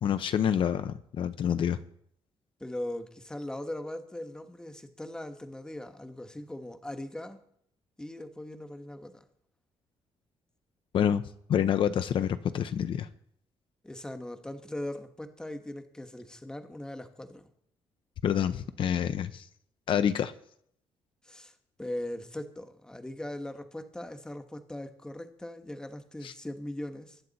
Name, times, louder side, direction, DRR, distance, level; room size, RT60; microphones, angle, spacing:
voice 1, 0.0-1.8 10.9-11.2 11.5-13.1 18.2-19.5 19.9-20.3 26.2-26.3, left 9 dB, 55° left, 11 dB, 0.7 m, -27 dB
voice 2, 2.6-7.4 8.0-9.2 13.8-17.5 21.2-21.5 21.8-27.2, left 1 dB, 5° left, 7 dB, 1.2 m, -40 dB
22.0 x 9.6 x 4.1 m, 0.69 s
cardioid pair, 145°, 10 cm